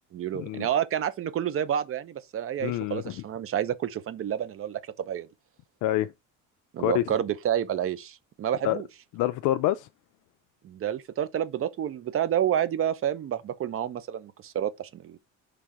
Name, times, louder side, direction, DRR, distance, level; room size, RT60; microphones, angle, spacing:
voice 1, 0.1-5.3 6.7-8.9 10.6-15.2, right 10 dB, 45° right, 0.7 m, -29 dB
voice 2, 2.6-3.1 5.8-6.1 6.8-7.0 8.6-8.8 9.2-9.9, left 14 dB, 70° left, 0.5 m, -26 dB
5.8 x 3.4 x 4.9 m
cardioid pair, 125°, 32 cm